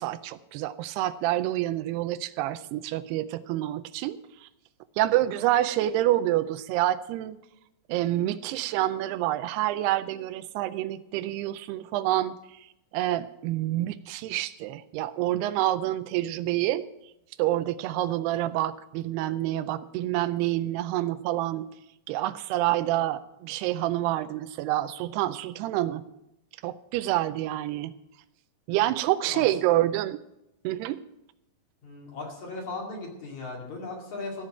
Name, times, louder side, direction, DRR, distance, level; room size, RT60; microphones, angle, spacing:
voice 1, 0.0-4.5 5.0-7.4 7.9-12.4 12.9-16.9 17.4-21.7 22.1-26.0 26.6-27.9 28.7-30.2 30.6-31.0, right 14 dB, 85° right, 12 dB, 2.6 m, -27 dB
voice 2, 31.8-34.4, left 3 dB, 50° left, -1 dB, 3.4 m, -37 dB
14.5 x 5.8 x 8.8 m, 0.87 s
omnidirectional pair, 4.6 m